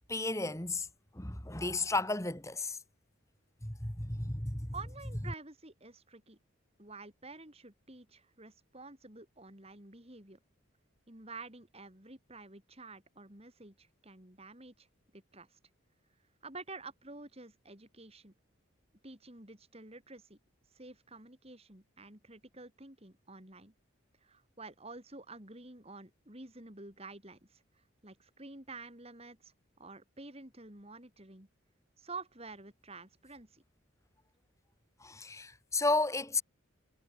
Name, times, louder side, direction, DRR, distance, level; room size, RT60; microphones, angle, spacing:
voice 1, 0.1-0.9 1.1-2.8 3.6-4.7 35.0-36.4, left 2 dB, 15° left, 2.4 m, -33 dB
voice 2, 4.7-6.4 6.8-10.4 11.1-14.9 15.1-15.6 16.4-18.3 19.0-20.4 20.7-23.7 24.2-31.5 32.0-33.6, right 3 dB, 30° right, 4.1 m, -50 dB
head